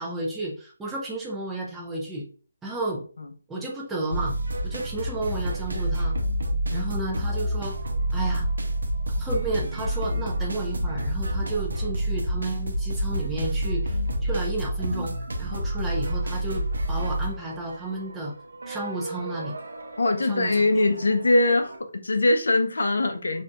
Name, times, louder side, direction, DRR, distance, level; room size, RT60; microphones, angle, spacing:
voice 1, 0.0-2.3 2.6-3.0 3.5-4.4 4.6-6.1 6.7-7.8 8.1-8.5 9.2-15.1 15.4-16.6 16.9-18.3 18.7-19.6 20.2-20.7, right 2 dB, 5° right, 0.5 m, -32 dB
sound 1, 4.1-21.8, right 1 dB, 85° right, 0.5 m, -29 dB
voice 2, 20.0-23.4, left 2 dB, 80° left, 0.5 m, -22 dB
2.6 x 2.5 x 2.2 m
hypercardioid pair, 160°, 0 cm